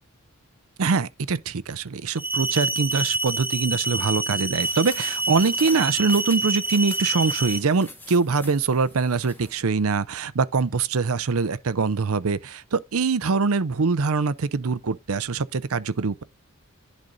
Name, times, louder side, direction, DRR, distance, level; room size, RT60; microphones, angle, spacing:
voice 1, 0.8-16.2, right 4 dB, 75° right, 0.6 m, -23 dB
sound 1, 2.2-7.6, right 2 dB, 10° right, 0.7 m, -27 dB
sound 2, 4.6-9.6, left 2 dB, 10° left, 1.3 m, -43 dB
10.5 x 4.1 x 3.9 m
head